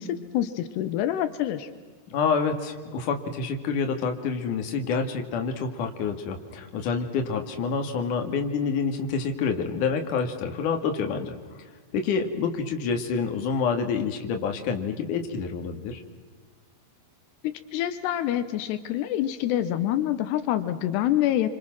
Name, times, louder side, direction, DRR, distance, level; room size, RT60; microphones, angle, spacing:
voice 1, 0.0-1.7 17.4-21.5, left 12 dB, 85° left, 11 dB, 3.1 m, -26 dB
voice 2, 2.1-11.4 11.9-16.0, left 5 dB, 55° left, 5 dB, 3.3 m, -27 dB
29.0 x 26.0 x 6.1 m, 1.4 s
omnidirectional pair, 4.7 m